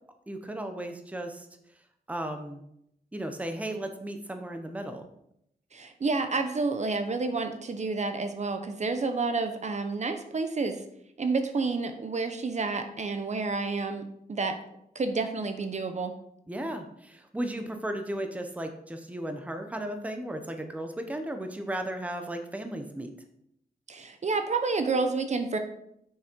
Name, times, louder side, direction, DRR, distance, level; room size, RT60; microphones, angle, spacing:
voice 1, 0.3-1.5 2.1-2.6 3.1-5.0 16.5-23.1, right 1 dB, 10° right, 6 dB, 0.9 m, -35 dB
voice 2, 5.7-10.8 11.2-14.0 14.3-14.6 14.9-16.1 23.9-25.6, right 3 dB, 45° right, 7 dB, 0.9 m, -29 dB
9.6 x 6.3 x 4.6 m, 0.75 s
wide cardioid pair, 150°, 16 cm